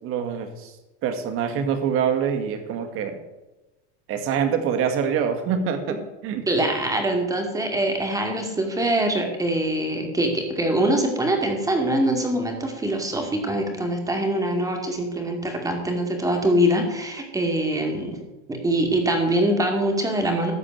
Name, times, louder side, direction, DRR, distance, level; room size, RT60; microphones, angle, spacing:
voice 1, 0.0-0.7 1.0-3.2 4.1-6.5, right 7 dB, 40° right, 6 dB, 1.9 m, -25 dB
voice 2, 6.5-18.1 18.5-20.5, right 1 dB, 10° right, 3 dB, 2.3 m, -23 dB
13.5 x 4.9 x 8.9 m, 1.0 s
supercardioid pair, 140°, 33 cm